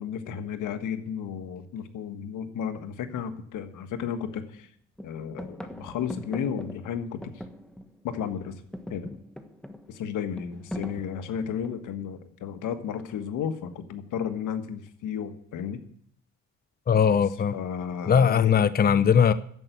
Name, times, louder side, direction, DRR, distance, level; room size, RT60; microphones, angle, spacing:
voice 1, 0.0-4.7 5.0-7.2 8.0-8.5 8.9-9.1 9.9-15.8 17.5-18.6, left 8 dB, 85° left, 9 dB, 1.5 m, -33 dB
sound 1, 3.6-3.7 4.1-4.7 5.0-8.1 8.4-12.0 13.0-13.5, equal, 5° left, 1.4 m, -42 dB
voice 2, 16.9-17.5 18.1-19.3, left 7 dB, 30° left, 14 dB, 0.7 m, -20 dB
10.5 x 8.2 x 9.1 m, 0.64 s
cardioid pair, 90°, 30 cm